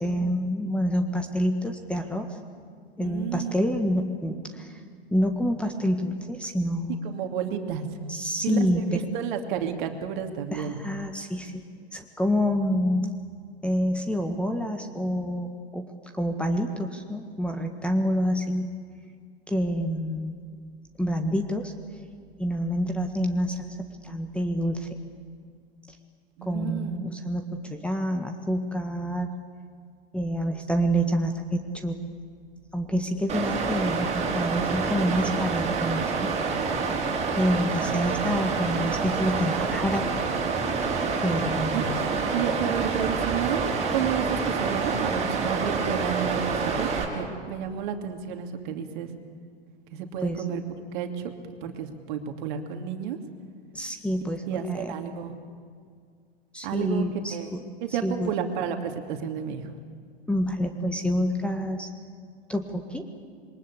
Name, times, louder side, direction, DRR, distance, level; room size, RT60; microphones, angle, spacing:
voice 1, 0.0-2.4 3.0-4.8 5.1-7.0 8.1-9.0 10.5-11.6 11.9-13.1 13.6-18.7 19.5-20.4 21.0-21.7 22.4-25.0 25.9-26.0 26.4-29.3 30.1-32.0 32.7-36.3 37.4-40.1 41.2-42.1 50.2-50.4 53.7-54.9 56.5-57.6 57.9-58.3 60.3-61.9 62.5-63.1, equal, 5° left, 6 dB, 1.6 m, -27 dB
voice 2, 3.0-3.8 7.0-7.8 8.4-10.8 26.4-27.0 41.7-42.0 42.3-43.6 43.9-49.1 49.9-50.6 50.9-51.3 51.6-53.2 54.5-55.3 56.6-57.1 57.3-57.5 57.8-59.7, right 8 dB, 50° right, 5 dB, 2.7 m, -31 dB
Water, 33.3-47.0, right 5 dB, 20° right, 4.7 m, -27 dB
27.0 x 22.5 x 8.4 m, 2.1 s
figure-of-eight pair, 100°, 32 cm